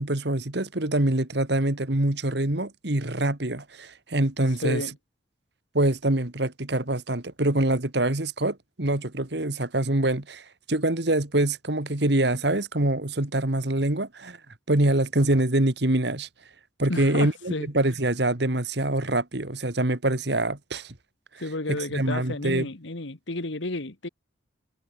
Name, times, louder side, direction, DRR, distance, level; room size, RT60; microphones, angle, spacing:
voice 1, 0.0-4.8 5.7-14.4 14.7-16.3 16.8-20.9 21.7-22.7, right 1 dB, 60° right, 2.0 m, -25 dB
voice 2, 4.6-4.9 16.9-17.7 21.4-24.1, left 2 dB, 75° left, 1.8 m, -31 dB
head